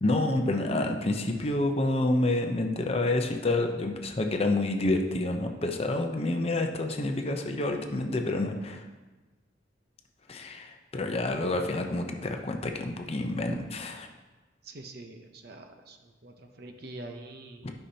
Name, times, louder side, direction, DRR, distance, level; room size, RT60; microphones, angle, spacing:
voice 1, 0.0-8.8 10.3-13.9 17.6-17.7, left 2 dB, 30° left, 4 dB, 0.6 m, -28 dB
voice 2, 14.6-17.7, right 2 dB, 55° right, 5 dB, 0.7 m, -44 dB
11.5 x 5.7 x 2.8 m, 1.2 s
head